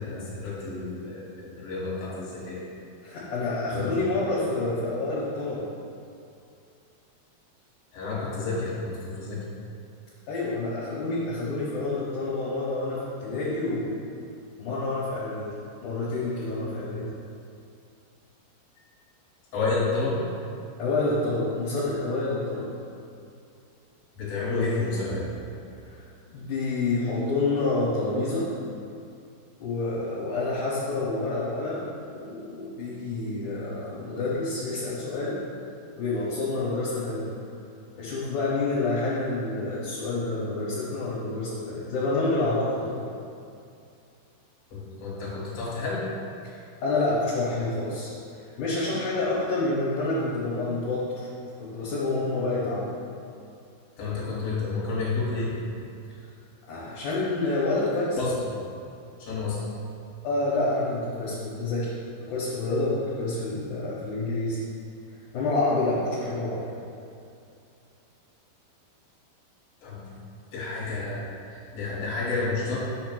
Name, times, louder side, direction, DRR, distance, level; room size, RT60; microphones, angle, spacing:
voice 1, 0.0-2.7 3.7-3.9 7.9-9.4 19.5-20.2 24.1-25.3 44.7-46.0 54.0-55.5 58.2-58.3 59.2-59.6 69.8-70.1 70.5-72.8, left 3 dB, 50° left, -7 dB, 2.3 m, -30 dB
voice 2, 3.0-5.7 10.3-14.0 14.6-15.5 15.8-17.1 20.8-22.7 25.8-28.5 29.6-35.4 35.9-37.3 37.9-43.0 46.4-51.3 51.6-52.9 56.7-58.2 60.2-61.9 62.2-64.6 65.3-66.7, left 2 dB, 65° left, -9 dB, 2.2 m, -28 dB
8.1 x 2.9 x 6.0 m, 2.5 s
omnidirectional pair, 4.6 m